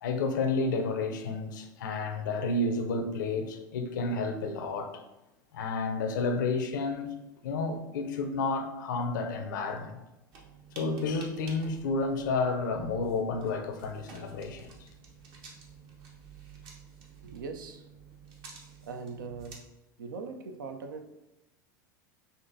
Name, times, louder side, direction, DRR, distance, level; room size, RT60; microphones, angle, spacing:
voice 1, 0.0-5.0 5.5-7.1 7.4-10.0 10.8-14.9, left 3 dB, 70° left, 0.5 m, -31 dB
sound 1, 10.3-19.6, right 5 dB, 50° right, 0.9 m, -51 dB
voice 2, 17.2-17.9 18.8-19.7 20.0-21.1, right 4 dB, 75° right, 0.5 m, -41 dB
5.7 x 2.6 x 2.6 m
hypercardioid pair, 85°, 11 cm